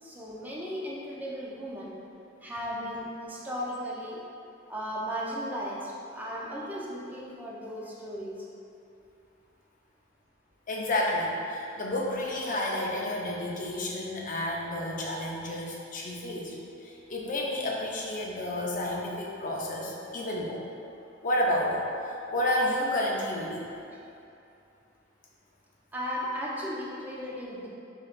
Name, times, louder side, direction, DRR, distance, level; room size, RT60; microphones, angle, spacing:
voice 1, 0.0-1.9 2.4-4.2 4.7-8.4 25.9-27.7, equal, 10° right, -5 dB, 0.4 m, -36 dB
voice 2, 10.7-16.5 16.8-20.6 21.2-21.8 22.3-23.7, left 1 dB, 45° left, -2 dB, 0.5 m, -30 dB
4.0 x 3.1 x 2.4 m, 2.7 s
head